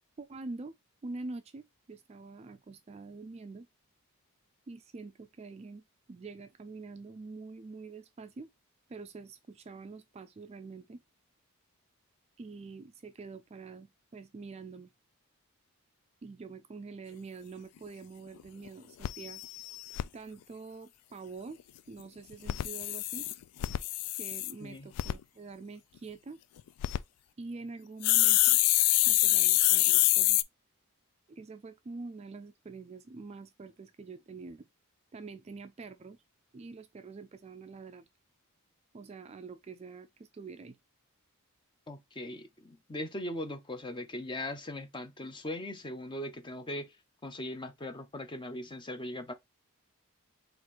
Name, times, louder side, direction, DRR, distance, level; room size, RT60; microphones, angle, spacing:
voice 1, 0.2-0.7 1.0-3.7 4.7-5.8 6.1-8.5 8.9-11.0 12.4-14.9 16.2-19.4 20.1-21.6 21.9-23.3 24.2-26.4 27.4-28.6 29.1-30.4 31.3-34.7 35.1-36.2 36.5-38.1 38.9-40.8, right 3 dB, 30° right, 0.3 m, -45 dB
sound 1, 17.9-18.0 18.4-18.5 18.7-18.8 19.0-20.0 22.3-24.5 25.0-25.1 26.6-27.0 28.0-30.4, left 16 dB, 90° left, 0.3 m, -26 dB
voice 2, 41.9-46.9 47.2-49.3, left 1 dB, 20° left, 0.6 m, -39 dB
4.5 x 2.5 x 3.9 m
head